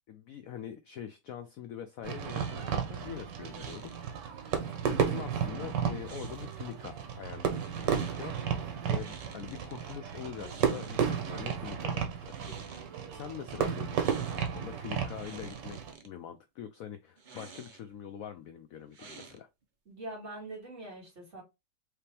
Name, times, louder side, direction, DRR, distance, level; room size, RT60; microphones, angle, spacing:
voice 1, 0.1-4.2 4.8-12.8 13.1-15.8 16.0-19.5, left 9 dB, 75° left, 0.8 m, -44 dB
Fireworks, 2.0-15.9, right 7 dB, 85° right, 1.5 m, -33 dB
sound 1, 2.3-2.8 3.5-4.0 6.0-6.7 7.4-8.3 8.9-10.0 10.3-11.3 12.2-12.9 13.9-14.6 14.9-16.1 17.2-18.0 18.9-19.6, right 5 dB, 65° right, 0.4 m, -51 dB
voice 2, 19.9-21.4, right 2 dB, 40° right, 2.3 m, -43 dB
4.9 x 2.9 x 3.3 m
omnidirectional pair, 1.9 m